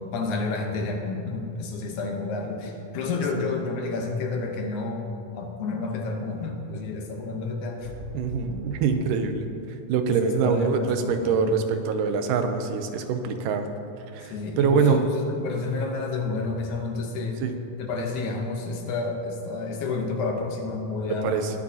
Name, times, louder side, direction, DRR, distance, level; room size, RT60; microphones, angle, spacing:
voice 1, 0.1-5.1 5.3-7.9 10.1-11.7 14.2-17.4 17.8-21.4, left 3 dB, 75° left, 2 dB, 2.3 m, -30 dB
sound 1, 7.8-9.1 10.7-11.3, equal, 65° right, 3.0 m, -39 dB
voice 2, 8.1-9.5 9.9-13.7 14.1-15.0 17.4-17.5 21.2-21.5, right 6 dB, 90° right, 7 dB, 2.3 m, -24 dB
21.0 x 7.3 x 2.8 m, 2.7 s
omnidirectional pair, 3.7 m